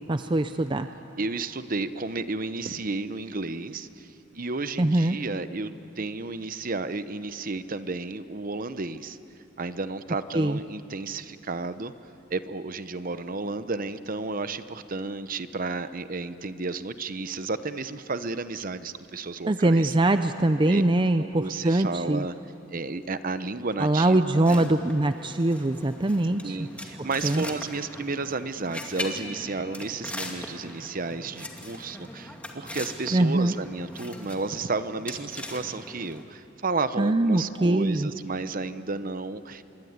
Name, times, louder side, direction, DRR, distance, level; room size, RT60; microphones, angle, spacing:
voice 1, 0.1-0.9 4.8-5.2 10.3-10.6 19.5-22.2 23.8-26.6 27.0-27.4 33.1-33.5 37.0-38.1, right 1 dB, 25° right, 9 dB, 0.6 m, -23 dB
voice 2, 1.2-9.2 9.6-11.9 12.3-20.0 20.7-20.8 21.2-22.3 22.7-24.6 26.4-39.6, right 3 dB, 45° right, 12 dB, 0.9 m, -32 dB
sound 1, 24.4-36.2, left 1 dB, 5° left, 2.3 m, -40 dB
25.5 x 23.5 x 9.6 m, 2.9 s
head